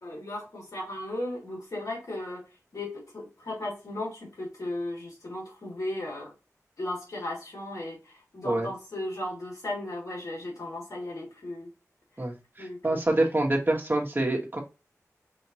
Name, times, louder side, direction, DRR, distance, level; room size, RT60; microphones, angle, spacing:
voice 1, 0.0-2.4 2.7-6.3 6.8-11.7 12.6-12.8, left 1 dB, 80° left, -2 dB, 2.4 m, -36 dB
voice 2, 12.2-14.6, right 1 dB, 35° right, 0 dB, 1.5 m, -26 dB
5.8 x 2.9 x 2.8 m, 0.29 s
wide cardioid pair, 55°, 6 cm